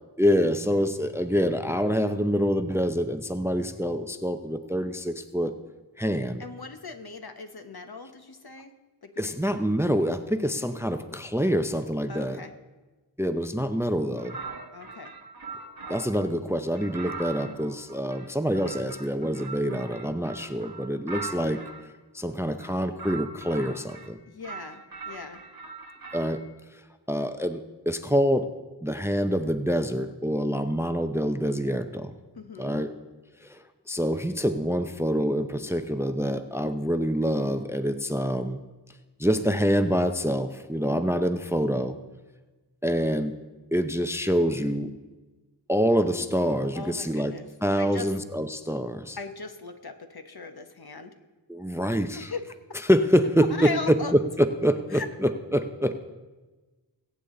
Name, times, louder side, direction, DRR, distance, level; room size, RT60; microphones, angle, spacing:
voice 1, 0.2-5.5 6.0-6.4 9.2-12.4 13.2-14.4 15.9-21.6 22.1-24.2 26.1-26.4 27.1-28.5 28.8-32.1 32.6-32.9 33.4-38.6 39.2-42.0 42.8-43.3 43.7-44.9 45.7-47.3 47.6-49.2 51.5-52.3 52.8-55.9, equal, 5° right, 9 dB, 0.6 m, -26 dB
voice 2, 6.4-8.7 9.0-9.3 12.1-12.5 14.7-15.1 24.3-25.4 32.3-32.8 46.7-47.5 47.8-48.1 49.2-51.1 52.1-52.4 53.5-54.1 54.9-55.1, left 4 dB, 55° left, 7 dB, 1.2 m, -38 dB
sound 1, 14.2-16.3 16.8-21.9 22.5-24.1 24.4-26.4, right 4 dB, 50° right, 1.2 m, -41 dB
22.0 x 8.4 x 3.9 m, 1.2 s
wide cardioid pair, 50°, 44 cm